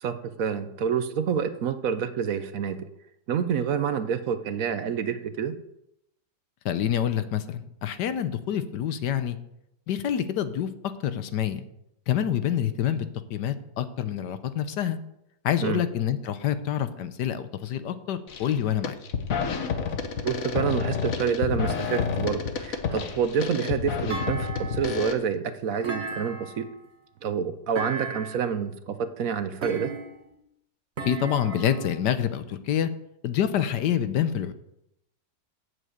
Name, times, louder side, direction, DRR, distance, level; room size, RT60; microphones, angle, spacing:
voice 1, 0.0-2.9 3.3-5.5 15.6-15.8 20.2-26.7 27.2-29.9, right 7 dB, 60° right, 11 dB, 1.0 m, -28 dB
voice 2, 6.6-9.4 9.9-10.7 11.0-11.6 12.1-15.0 15.4-18.9 31.0-32.9 33.2-34.5, left 9 dB, 70° left, 11 dB, 1.3 m, -27 dB
sound 1, 18.3-18.5 18.8-25.1, left 6 dB, 50° left, 1.3 m, -29 dB
Thump thud, 24.1-25.0 25.8-26.8 27.7-28.5 29.6-30.3 31.0-32.0, right 3 dB, 40° right, 1.4 m, -35 dB
8.2 x 7.7 x 8.0 m, 0.80 s
omnidirectional pair, 2.0 m